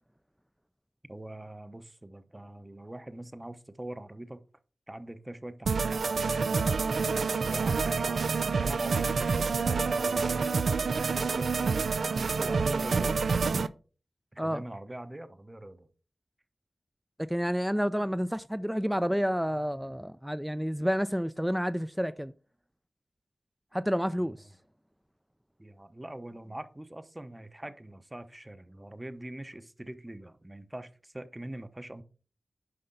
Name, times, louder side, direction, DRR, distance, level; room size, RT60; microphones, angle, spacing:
voice 1, 1.1-4.4 4.9-6.8 7.4-10.4 10.8-11.9 12.1-13.2 14.3-15.9 25.6-32.0, right 1 dB, 20° right, 0.8 m, -43 dB
sound 1, 5.7-13.7, right 4 dB, 85° right, 0.3 m, -28 dB
voice 2, 17.2-22.3 23.7-24.4, equal, 5° right, 0.4 m, -29 dB
9.6 x 5.6 x 3.8 m
cardioid pair, 50°, 0 cm